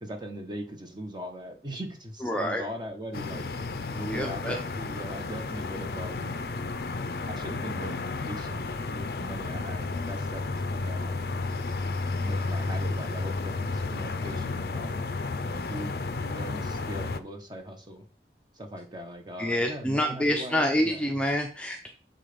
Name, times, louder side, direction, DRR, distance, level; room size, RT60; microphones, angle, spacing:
voice 1, 0.0-3.5 4.1-6.4 7.3-8.7 8.9-11.2 12.2-15.0 15.4-18.1 18.5-21.0, equal, 25° right, 4 dB, 1.2 m, -40 dB
voice 2, 2.2-2.6 3.9-4.6 5.1-5.2 19.4-21.9, equal, 5° left, 2 dB, 0.6 m, -27 dB
sound 1, 3.1-17.2, left 3 dB, 55° left, 0.5 m, -32 dB
7.4 x 3.9 x 5.1 m, 0.39 s
head